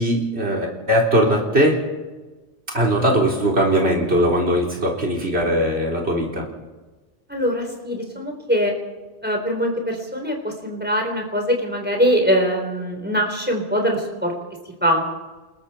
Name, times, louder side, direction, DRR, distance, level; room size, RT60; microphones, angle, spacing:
voice 1, 0.0-1.8 2.7-6.5, equal, 65° right, -1 dB, 4.2 m, -20 dB
voice 2, 7.3-8.7 9.2-14.3 14.8-15.0, equal, 10° right, 2 dB, 4.0 m, -22 dB
28.5 x 21.0 x 4.4 m, 1.2 s
omnidirectional pair, 1.1 m